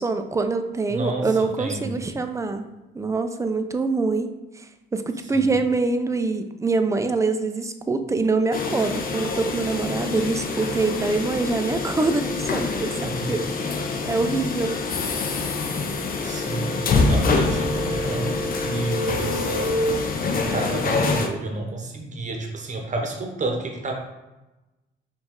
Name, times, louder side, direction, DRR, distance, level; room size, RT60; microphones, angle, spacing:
voice 1, 0.0-2.7 2.9-4.3 4.6-4.7 4.9-13.7 14.1-15.0, right 3 dB, 15° right, 7 dB, 0.4 m, -25 dB
voice 2, 0.9-2.0 5.2-5.5 13.0-13.3 16.2-18.3 18.6-19.8 20.2-23.9, right 2 dB, 40° right, 2 dB, 0.9 m, -31 dB
sound 1, 8.5-21.3, left 3 dB, 45° left, 0.6 m, -25 dB
5.1 x 2.4 x 3.6 m, 1.0 s
cardioid pair, 90°, 20 cm